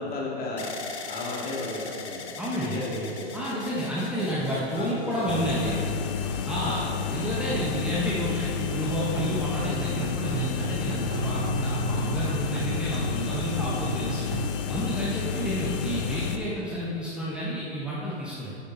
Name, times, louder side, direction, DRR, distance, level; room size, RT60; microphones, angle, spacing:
voice 1, 0.0-2.3 2.5-3.2 4.2-5.8 6.6-6.9 15.3-15.7, left 2 dB, 25° left, -4 dB, 2.3 m, -35 dB
sound 1, 0.6-8.6 9.3-9.9, left 5 dB, 85° left, 1.0 m, -42 dB
voice 2, 2.4-2.8 3.3-5.8 6.4-6.8 7.1-14.3 14.7-18.6, equal, 5° right, -8 dB, 1.3 m, -30 dB
sound 2, 5.3-16.4, left 7 dB, 55° left, 1.0 m, -30 dB
sound 3, 7.5-14.5, right 6 dB, 80° right, 0.5 m, -34 dB
9.4 x 8.4 x 4.0 m, 2.7 s
hypercardioid pair, 115°, 33 cm